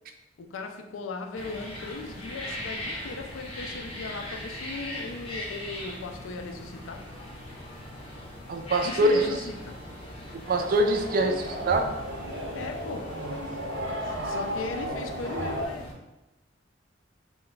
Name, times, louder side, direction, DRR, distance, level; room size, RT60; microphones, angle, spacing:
voice 1, 0.4-7.1 8.8-9.8 12.5-13.2 14.0-16.0, left 3 dB, 85° left, 5 dB, 0.4 m, -38 dB
sound 1, 1.3-15.9, left 1 dB, 30° left, 0.6 m, -40 dB
voice 2, 8.5-9.4 10.3-11.9, right 1 dB, 45° right, 4 dB, 0.3 m, -24 dB
sound 2, 10.4-15.7, equal, 80° right, 0.6 m, -34 dB
2.4 x 2.1 x 3.7 m, 0.96 s
head